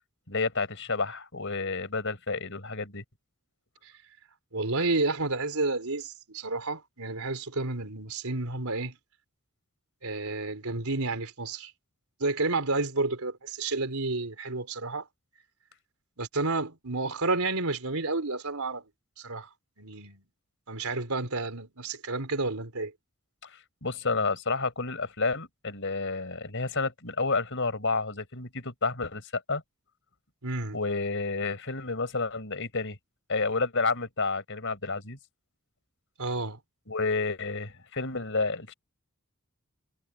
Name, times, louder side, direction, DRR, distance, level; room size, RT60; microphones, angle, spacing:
voice 1, 0.3-3.0 23.4-29.6 30.7-33.0 33.3-35.2 36.9-38.7, left 3 dB, 60° left, 5.1 m, -30 dB
voice 2, 4.5-9.0 10.0-11.7 12.2-15.1 16.2-18.9 19.2-19.5 19.8-20.2 20.7-22.9 30.4-30.8 36.2-36.6, right 3 dB, 80° right, 3.7 m, -30 dB
head